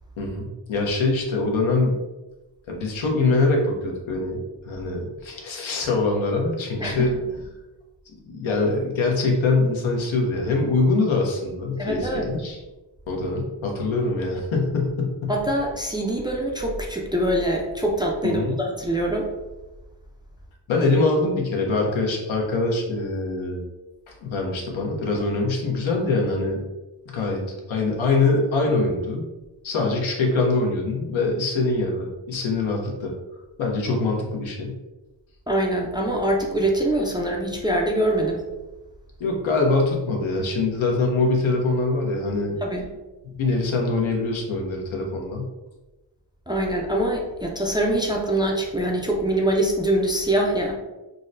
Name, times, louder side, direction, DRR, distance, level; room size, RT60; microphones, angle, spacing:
voice 1, 0.2-2.0 2.7-7.2 8.1-12.6 13.1-15.3 18.2-18.6 20.7-23.6 24.2-26.6 27.1-27.4 27.7-29.2 29.6-33.1 33.6-34.8 39.2-42.9 43.3-45.5, left 3 dB, 80° left, 0 dB, 0.9 m, -23 dB
voice 2, 6.8-7.1 11.8-12.3 15.3-19.3 35.5-38.4 42.6-42.9 46.5-50.7, right 1 dB, 10° right, -1 dB, 0.4 m, -24 dB
3.8 x 2.1 x 2.5 m, 1.1 s
cardioid pair, 75°, 46 cm